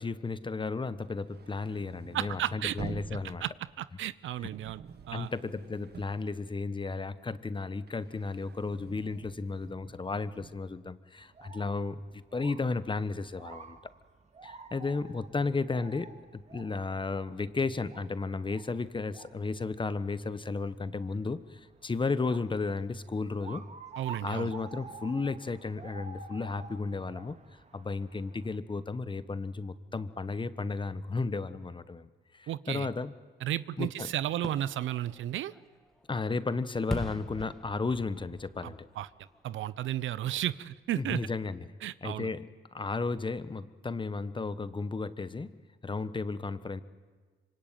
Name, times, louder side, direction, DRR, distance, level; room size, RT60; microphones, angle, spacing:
voice 1, 0.0-3.4 5.1-13.8 14.4-23.6 24.2-27.3 27.7-33.1 33.8-34.1 36.1-38.9 40.9-41.6 42.0-45.5 45.8-46.8, left 3 dB, 25° left, 14 dB, 1.3 m, -34 dB
sound 1, 1.0-7.1 7.4-10.7, right 6 dB, 55° right, 1.7 m, -48 dB
voice 2, 2.1-2.8 3.4-3.5 3.8-5.3 24.0-24.5 32.5-32.9 33.4-35.5 38.6-39.1 39.4-41.2 41.8-42.3, right 12 dB, 75° right, 17 dB, 0.8 m, -33 dB
sound 2, 11.2-28.5, right 4 dB, 35° right, 2.3 m, -50 dB
Fireworks, 34.3-40.1 40.5-40.6, equal, ahead, 2.2 m, -42 dB
25.5 x 25.5 x 9.2 m, 1.5 s
cardioid pair, 90°, 20 cm